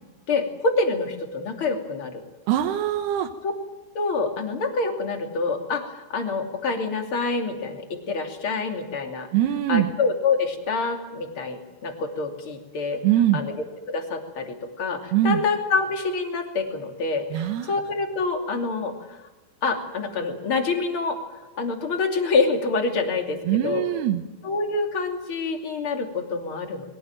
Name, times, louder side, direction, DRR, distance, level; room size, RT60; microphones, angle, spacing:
voice 1, 0.3-2.2 3.9-9.3 9.7-13.0 13.3-13.5 13.9-18.9 19.6-21.2 21.6-23.4 23.6-23.8 24.4-26.9, left 4 dB, 35° left, 3 dB, 3.2 m, -26 dB
voice 2, 2.5-3.3 9.3-9.9 13.0-13.4 15.1-15.4 17.3-17.7 23.4-24.2, right 12 dB, 85° right, 5 dB, 3.2 m, -22 dB
22.5 x 18.0 x 9.1 m, 1.1 s
omnidirectional pair, 4.5 m